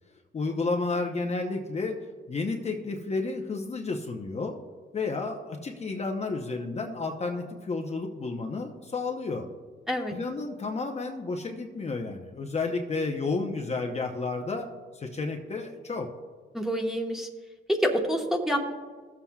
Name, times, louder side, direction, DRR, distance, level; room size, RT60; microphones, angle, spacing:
voice 1, 0.3-2.0 2.3-4.5 4.9-9.5 10.1-14.7 14.9-16.1, left 3 dB, 35° left, 2 dB, 0.8 m, -31 dB
voice 2, 16.5-17.3 17.7-18.7, equal, ahead, 2 dB, 1.3 m, -27 dB
15.5 x 7.2 x 2.4 m, 1.4 s
cardioid pair, 90°, 20 cm